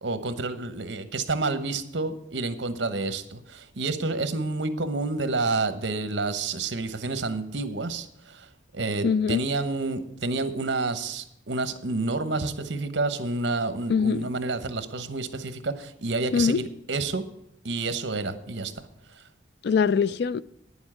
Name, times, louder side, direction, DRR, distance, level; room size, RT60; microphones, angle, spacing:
voice 1, 0.0-8.5 8.7-17.2 17.6-18.9, right 3 dB, 65° right, 1.0 m, -29 dB
voice 2, 9.0-9.4 13.9-14.3 16.3-16.6 19.6-20.4, left 6 dB, 60° left, 0.3 m, -23 dB
9.7 x 7.2 x 8.5 m
head